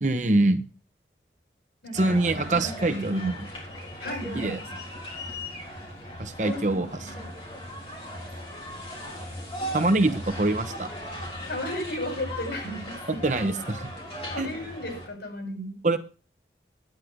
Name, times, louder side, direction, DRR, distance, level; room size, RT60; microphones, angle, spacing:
voice 1, 0.0-0.6 1.9-3.3 4.4-4.6 6.2-6.9 9.7-10.9 13.1-13.9 14.4-14.5 15.8-16.0, right 2 dB, 45° right, 9 dB, 1.0 m, -24 dB
voice 2, 1.8-3.4 4.0-4.5 6.4-7.3 11.5-13.2 14.3-15.8, equal, 80° left, 2 dB, 7.2 m, -34 dB
sound 1, 1.9-15.1, equal, 30° left, 4.0 m, -38 dB
10.5 x 9.5 x 5.1 m, 0.36 s
head